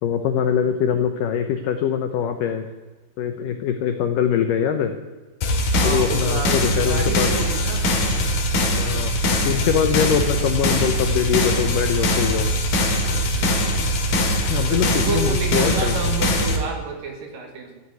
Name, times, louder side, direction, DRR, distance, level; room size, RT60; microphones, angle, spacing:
voice 1, 0.0-2.7 3.2-4.9 5.8-7.3 8.8-9.2 9.4-12.5 14.5-16.1, left 8 dB, 80° left, 7 dB, 1.9 m, -23 dB
sound 1, 5.4-16.6, equal, 60° left, 3.4 m, -21 dB
voice 2, 5.7-7.9 14.7-17.8, right 3 dB, 55° right, 3 dB, 3.4 m, -29 dB
14.5 x 7.9 x 9.7 m, 1.3 s
omnidirectional pair, 5.0 m